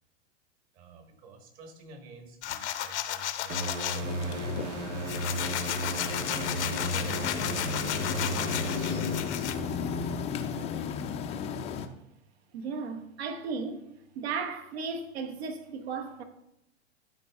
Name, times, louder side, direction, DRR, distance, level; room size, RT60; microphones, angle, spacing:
voice 1, 0.7-5.6 6.2-10.9, right 3 dB, 40° right, 1.7 m, -50 dB
sound 1, 2.4-4.0 4.5-9.6, left 11 dB, 75° left, 0.8 m, -33 dB
sound 2, 3.5-10.0, right 1 dB, 90° right, 1.6 m, -35 dB
sound 3, 4.0-11.9, left 6 dB, 20° left, 0.5 m, -35 dB
voice 2, 12.5-13.9 14.1-16.2, right 5 dB, 60° right, 1.1 m, -35 dB
11.5 x 4.4 x 3.6 m
hypercardioid pair, 125°, 35 cm